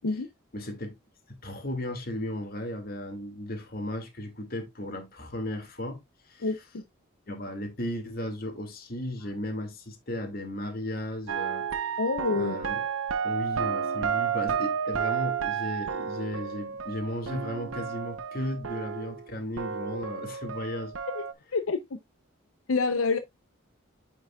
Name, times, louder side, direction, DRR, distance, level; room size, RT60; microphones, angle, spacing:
voice 1, 0.5-0.9 1.4-6.0 6.3-6.5 7.3-12.0 12.3-12.8 13.2-20.9, left 1 dB, 45° left, 2.1 m, -35 dB
voice 2, 6.4-6.8 12.0-12.6 21.1-21.2 21.5-22.0 22.7-23.2, left 4 dB, 85° left, 0.7 m, -27 dB
sound 1, 11.3-19.3 19.6-21.3, right 7 dB, 80° right, 0.8 m, -31 dB
9.3 x 5.3 x 2.3 m
head